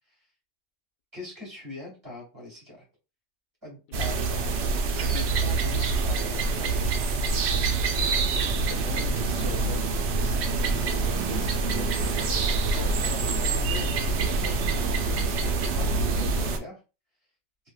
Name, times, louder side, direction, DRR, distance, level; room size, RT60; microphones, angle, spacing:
voice 1, 1.1-2.8 3.6-4.8 5.1-7.3 12.7-16.8, left 1 dB, 20° right, -4 dB, 1.6 m, -42 dB
sound 1, 3.9-16.6, right 3 dB, 65° right, 0.7 m, -26 dB
voice 2, 8.0-12.7 13.0-13.4, left 6 dB, 90° left, 4 dB, 1.1 m, -45 dB
3.2 x 2.7 x 2.2 m, 0.31 s
omnidirectional pair, 1.4 m